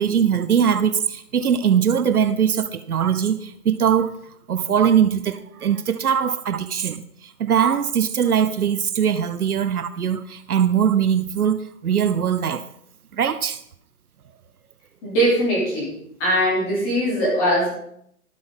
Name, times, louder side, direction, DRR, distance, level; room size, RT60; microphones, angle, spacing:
voice 1, 0.0-4.1 4.5-12.6 13.1-13.6, right 8 dB, 70° right, 0.9 m, -21 dB
voice 2, 15.0-15.9 16.2-17.7, equal, 15° left, 3.1 m, -20 dB
12.5 x 9.9 x 3.8 m
hypercardioid pair, 175°, 46 cm